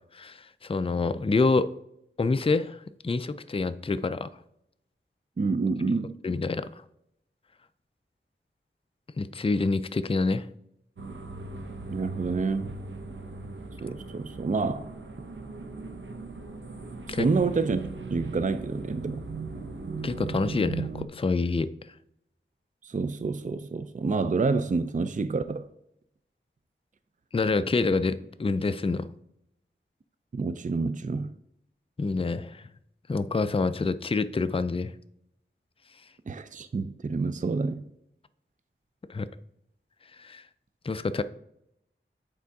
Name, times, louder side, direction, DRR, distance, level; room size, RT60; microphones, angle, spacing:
voice 1, 0.1-1.7 2.2-4.3 6.2-6.7 9.2-10.5 17.1-17.3 20.0-21.7 27.3-29.1 32.0-32.6 33.1-34.9 39.1-39.3 40.2-40.4 40.8-41.2, left 3 dB, 25° left, 0.4 m, -27 dB
voice 2, 5.4-6.1 11.9-12.7 13.8-14.9 17.1-17.8 18.1-19.2 22.8-25.7 30.3-31.3 36.3-37.9, right 4 dB, 40° right, 0.4 m, -28 dB
sound 1, 11.0-21.1, right 3 dB, 65° right, 0.8 m, -38 dB
8.3 x 3.6 x 4.7 m
wide cardioid pair, 45°, 21 cm